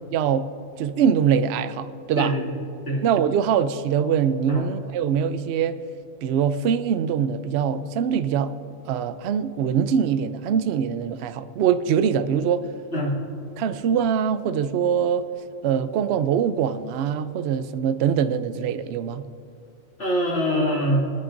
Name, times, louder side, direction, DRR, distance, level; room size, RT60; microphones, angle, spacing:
voice 1, 0.1-0.4 0.8-2.3 3.0-5.8 6.2-8.5 8.8-12.7 13.6-15.3 15.6-19.2, right 8 dB, 65° right, 12 dB, 0.7 m, -23 dB
voice 2, 2.2-2.5 2.8-3.0 4.5-4.6 12.9-13.2 20.0-21.0, equal, 50° left, -5 dB, 3.0 m, -23 dB
23.0 x 9.9 x 2.6 m, 2.8 s
omnidirectional pair, 1.5 m